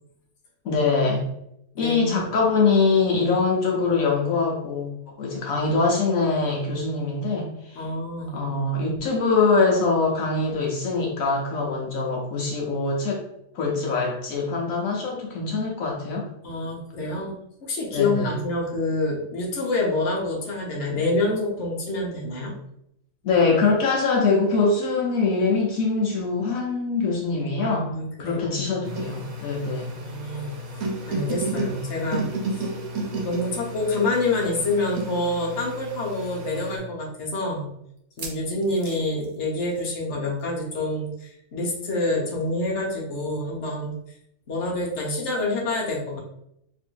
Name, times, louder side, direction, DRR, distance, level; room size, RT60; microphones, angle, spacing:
voice 1, 0.6-1.2 1.8-7.8 8.3-13.2 13.5-16.3 17.9-18.4 23.2-27.9 28.2-29.9, left 4 dB, 75° left, -2 dB, 1.2 m, -23 dB
voice 2, 1.7-2.3 7.7-8.4 16.4-17.4 17.6-22.5 27.6-28.7 30.0-30.6 31.1-32.7 33.2-37.7 38.2-43.9 44.5-46.2, left 2 dB, 55° left, -2 dB, 1.2 m, -27 dB
sound 1, 28.8-36.8, right 2 dB, 75° right, 1.3 m, -32 dB
sound 2, 38.0-40.1 40.4-40.6 40.8-40.9 42.4-42.5, right 3 dB, 45° right, 0.7 m, -42 dB
3.1 x 2.6 x 4.5 m, 0.78 s
omnidirectional pair, 1.5 m